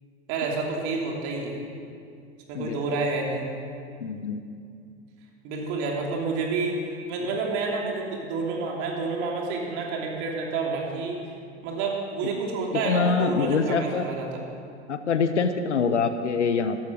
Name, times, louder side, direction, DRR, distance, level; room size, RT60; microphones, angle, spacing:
voice 1, 0.3-1.6 2.5-3.5 5.4-6.8 7.1-11.2 11.6-14.3, right 4 dB, 55° right, -1 dB, 3.1 m, -29 dB
voice 2, 4.0-4.4 12.7-14.1 14.9-16.8, left 5 dB, 85° left, 9 dB, 0.8 m, -25 dB
13.5 x 11.5 x 6.4 m, 2.4 s
figure-of-eight pair, 80°, 34 cm